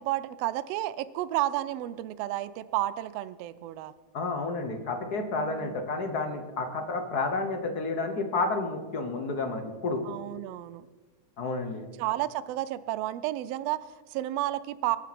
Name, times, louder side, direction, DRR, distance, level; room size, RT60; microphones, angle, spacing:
voice 1, 0.0-3.9 5.4-5.8 10.0-10.9 12.0-15.0, right 15 dB, 80° right, 15 dB, 1.4 m, -31 dB
voice 2, 4.1-10.3 11.4-11.9, left 3 dB, 55° left, 6 dB, 1.0 m, -31 dB
22.5 x 9.0 x 4.2 m, 1.3 s
omnidirectional pair, 3.3 m